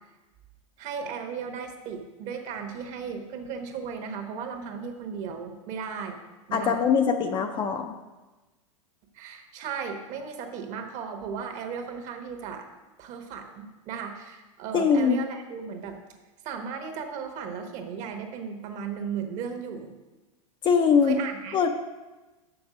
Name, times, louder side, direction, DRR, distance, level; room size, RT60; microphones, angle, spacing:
voice 1, 0.8-6.2 6.5-6.8 9.1-12.7 13.0-16.0 16.4-19.9 21.0-21.6, right 6 dB, 40° right, 5 dB, 1.2 m, -36 dB
voice 2, 6.5-8.0 14.7-15.2 20.6-21.2 21.5-21.7, left 6 dB, 25° left, 6 dB, 0.6 m, -22 dB
7.0 x 6.2 x 5.1 m, 1.1 s
hypercardioid pair, 125°, 18 cm